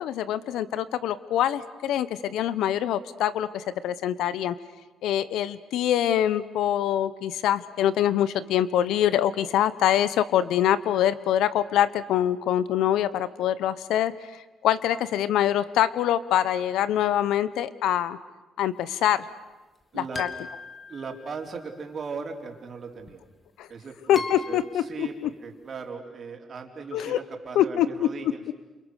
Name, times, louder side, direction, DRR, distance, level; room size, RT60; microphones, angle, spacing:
voice 1, 0.0-4.6 5.0-18.2 18.6-19.3 19.9-20.3 23.6-23.7 24.1-25.1 26.9-27.2 27.5-28.1 28.5-28.6, left 11 dB, 85° left, 16 dB, 1.0 m, -24 dB
voice 2, 19.9-20.2 20.9-23.2 23.7-28.4, right 4 dB, 45° right, 2 dB, 4.3 m, -38 dB
sound 1, 20.2-21.7 23.1-23.2 24.2-25.0, left 4 dB, 30° left, 2.1 m, -38 dB
29.5 x 28.0 x 6.6 m, 1.2 s
cardioid pair, 90°, 0 cm